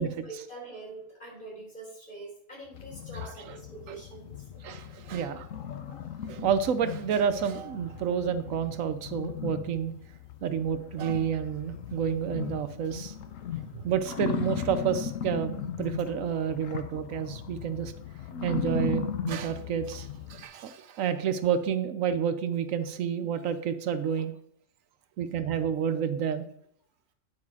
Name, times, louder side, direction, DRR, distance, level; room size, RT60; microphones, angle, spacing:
voice 1, 0.0-4.5, right 2 dB, 40° left, -4 dB, 4.0 m, -44 dB
sound 1, 2.7-20.4, left 7 dB, 75° left, 1.2 m, -37 dB
voice 2, 3.2-3.5 3.9-4.0 4.6-5.5 6.2-9.9 10.4-13.1 13.7-17.9 18.4-24.3 25.2-26.5, right 8 dB, 80° right, 11 dB, 1.0 m, -29 dB
9.6 x 4.8 x 4.7 m, 0.69 s
omnidirectional pair, 1.4 m